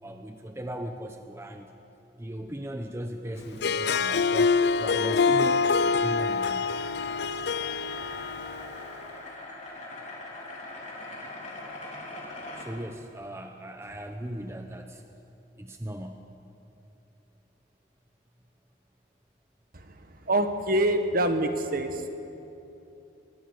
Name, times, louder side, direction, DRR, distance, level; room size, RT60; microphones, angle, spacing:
voice 1, 0.0-1.7 2.2-6.7 12.6-15.0 15.5-16.2, right 1 dB, 15° right, 5 dB, 0.9 m, -38 dB
sound 1, 3.2-12.7, left 2 dB, 40° left, 4.0 m, -43 dB
Harp, 3.5-8.9, left 4 dB, 60° left, 0.5 m, -25 dB
voice 2, 19.7-22.1, right 1 dB, 50° right, 7 dB, 1.6 m, -26 dB
23.5 x 20.5 x 6.7 m, 2.9 s
head